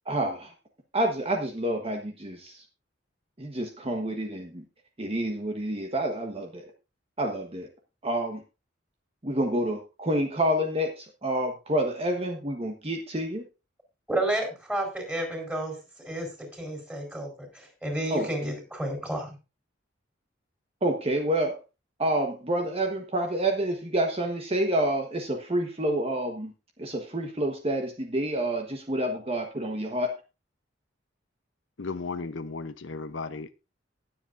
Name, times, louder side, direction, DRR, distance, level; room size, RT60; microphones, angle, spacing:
voice 1, 0.1-0.5 0.9-2.6 3.4-4.6 5.0-6.7 7.2-7.7 8.0-8.4 9.2-13.5 18.1-18.5 20.8-21.6 22.0-26.5 26.8-30.2, right 1 dB, 30° right, 4 dB, 1.2 m, -28 dB
voice 2, 14.1-19.4, right 1 dB, 5° right, 2 dB, 4.3 m, -31 dB
voice 3, 31.8-33.5, left 4 dB, 80° left, 12 dB, 0.7 m, -35 dB
19.5 x 7.8 x 2.6 m, 0.28 s
head